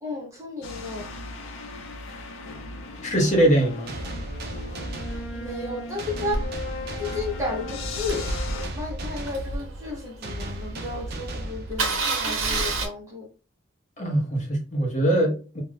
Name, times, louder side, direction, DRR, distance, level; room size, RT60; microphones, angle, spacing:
voice 1, 0.0-1.1 5.3-6.5 7.0-8.3 8.5-13.3, left 2 dB, 15° right, 0.7 m, -33 dB
sound 1, 0.6-8.7, left 2 dB, 75° left, 0.5 m, -37 dB
voice 2, 3.0-3.9 14.0-15.6, right 1 dB, 35° left, 0.7 m, -22 dB
sound 2, 3.9-12.3, right 1 dB, 50° right, 0.4 m, -36 dB
Engine starting, 6.3-10.5 11.0-11.1 11.3-11.4 11.7-12.9, right 3 dB, 80° right, 0.7 m, -29 dB
2.4 x 2.1 x 3.2 m
head